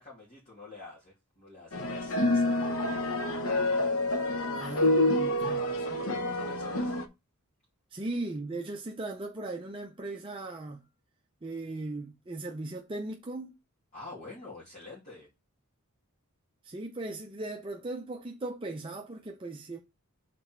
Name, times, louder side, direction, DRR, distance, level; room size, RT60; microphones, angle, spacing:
voice 1, 0.0-2.7 4.6-4.9 5.4-7.0 13.9-15.3, left 2 dB, 35° left, 2.4 m, -46 dB
sound 1, 1.7-7.0, left 1 dB, 70° left, 0.8 m, -28 dB
voice 2, 4.5-5.6 7.9-10.9 11.4-13.6 16.6-19.8, right 2 dB, 25° right, 0.5 m, -38 dB
6.0 x 4.1 x 4.5 m
head